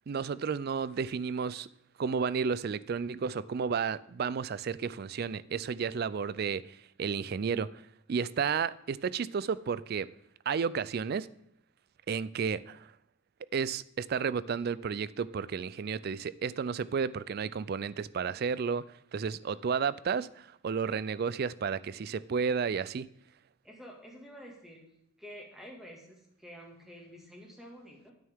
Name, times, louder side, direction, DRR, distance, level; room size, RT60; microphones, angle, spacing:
voice 1, 0.1-1.7 2.0-7.7 8.1-10.1 10.5-11.3 12.1-12.9 13.5-18.9 19.1-23.1, right 6 dB, 50° right, 0.4 m, -32 dB
voice 2, 23.6-24.8 25.2-28.1, equal, ahead, 2.0 m, -49 dB
9.6 x 9.1 x 3.6 m
head